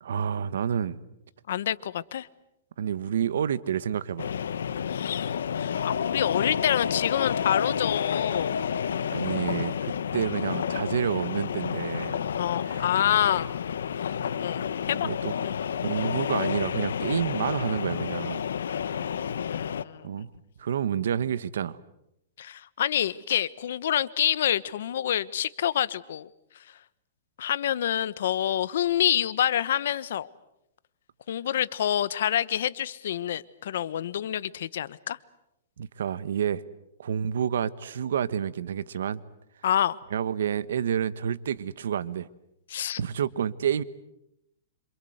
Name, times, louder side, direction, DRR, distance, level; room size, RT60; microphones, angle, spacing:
voice 1, 0.0-1.0 2.8-4.3 9.1-12.2 12.6-12.9 15.0-15.5 15.8-18.4 18.9-19.0 20.0-20.3 20.6-21.8 35.8-36.6 37.0-39.2 40.1-42.3 43.0-43.8, right 8 dB, 80° right, 1.3 m, -29 dB
voice 2, 1.5-2.3 4.9-8.6 12.4-13.5 14.4-15.1 15.4-15.5 19.4-20.1 22.4-26.3 27.4-30.3 31.3-35.2 39.6-40.0 42.7-43.0, left 10 dB, 70° left, 1.2 m, -27 dB
sound 1, 4.2-19.8, left 8 dB, 90° left, 1.2 m, -30 dB
27.0 x 27.0 x 8.0 m
hypercardioid pair, 155°, 0 cm